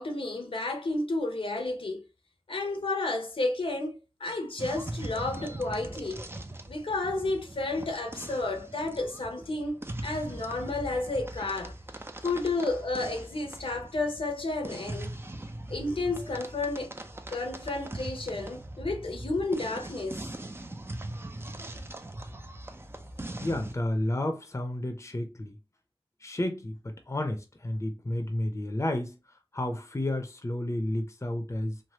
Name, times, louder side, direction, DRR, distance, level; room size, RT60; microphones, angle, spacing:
voice 1, 0.0-2.0 2.5-3.9 4.2-6.2 6.7-11.7 12.2-15.1 15.7-16.9 17.3-20.2, left 2 dB, 70° left, 0.8 m, -31 dB
sound 1, 4.6-23.7, right 1 dB, 25° right, 0.5 m, -41 dB
voice 2, 23.4-25.6 26.2-31.8, left 1 dB, 30° left, 0.7 m, -31 dB
3.2 x 2.1 x 2.8 m
cardioid pair, 40°, 10 cm